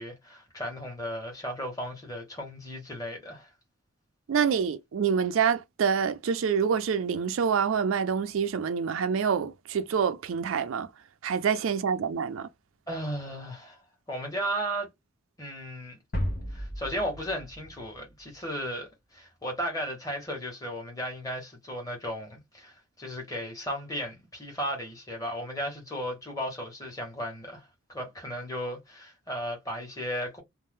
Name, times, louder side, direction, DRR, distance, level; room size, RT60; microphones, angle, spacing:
voice 1, 0.0-3.5 12.9-13.8 14.1-14.9 15.4-16.0 16.5-30.4, equal, 15° left, 1.2 m, -35 dB
voice 2, 4.3-10.9 11.2-12.5, right 6 dB, 70° right, 0.4 m, -26 dB
sound 1, 16.1-18.6, equal, 45° left, 1.0 m, -35 dB
2.6 x 2.1 x 3.4 m
head